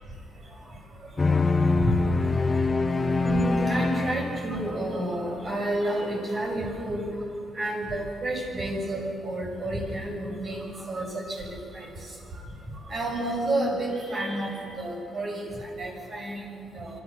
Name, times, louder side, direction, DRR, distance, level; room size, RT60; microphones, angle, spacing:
sound 1, 1.2-4.9, left 3 dB, 25° left, 1.1 m, -24 dB
voice 1, 3.2-7.0 7.5-11.9 12.9-16.9, right 1 dB, 40° right, -1 dB, 6.3 m, -30 dB
26.0 x 14.0 x 7.0 m, 2.6 s
cardioid pair, 110°, 0 cm